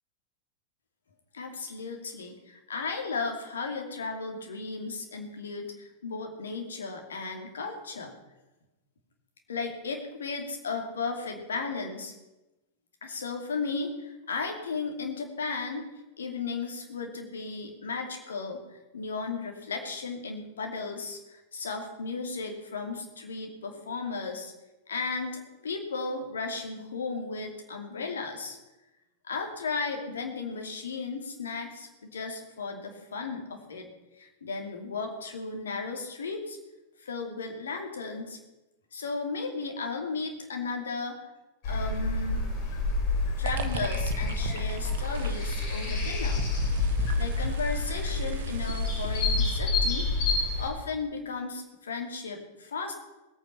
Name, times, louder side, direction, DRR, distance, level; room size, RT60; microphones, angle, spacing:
voice 1, 1.3-8.1 9.5-12.1 13.0-15.9 16.2-24.5 24.9-28.6 29.2-33.9 34.2-36.6 37.0-38.4 38.9-41.2 41.6-42.5 43.4-46.4 47.2-50.1 50.6-52.9, left 4 dB, 70° left, 3 dB, 2.6 m, -35 dB
sound 1, 41.6-50.7, left 3 dB, 45° left, 4.4 m, -28 dB
sound 2, 43.5-49.4, right 6 dB, 55° right, 1.2 m, -39 dB
19.5 x 8.9 x 5.7 m, 1.0 s
figure-of-eight pair, 90°, 0 cm